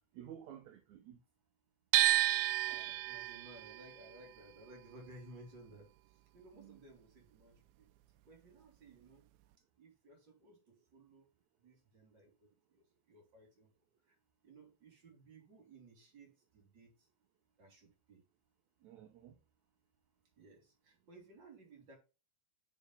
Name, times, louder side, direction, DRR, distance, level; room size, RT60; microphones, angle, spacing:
voice 1, 0.2-1.2 2.7-2.9 6.5-6.8 18.8-19.3, right 10 dB, 65° right, 2.0 m, -53 dB
sound 1, 1.9-8.0 8.2-9.5, right 15 dB, 90° right, 2.5 m, -34 dB
voice 2, 2.7-7.9 8.3-9.3 9.8-11.3 11.6-13.7 14.1-14.2 14.4-17.1 17.6-18.2 20.4-22.0, right 2 dB, 30° right, 3.8 m, -58 dB
7.1 x 6.2 x 5.6 m
omnidirectional pair, 4.2 m